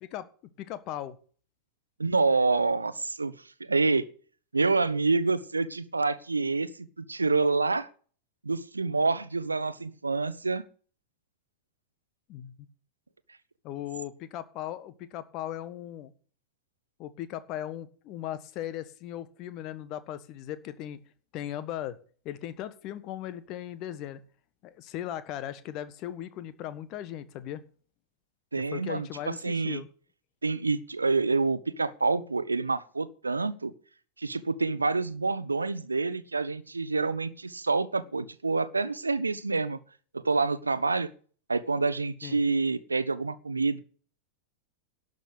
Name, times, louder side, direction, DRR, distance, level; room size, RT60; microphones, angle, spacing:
voice 1, 0.6-1.2 12.3-12.5 13.6-16.1 17.0-21.0 21.3-22.0 22.2-24.2 24.6-27.6 28.7-29.9 42.2-42.4, left 12 dB, 40° left, 13 dB, 1.4 m, -38 dB
voice 2, 2.0-3.3 3.6-4.1 4.5-7.9 8.4-10.6 28.5-29.8 30.4-33.7 34.2-39.8 40.1-41.1 41.5-43.8, right 3 dB, 80° right, 16 dB, 0.9 m, -27 dB
12.0 x 6.6 x 8.5 m, 0.42 s
figure-of-eight pair, 90°, 0 cm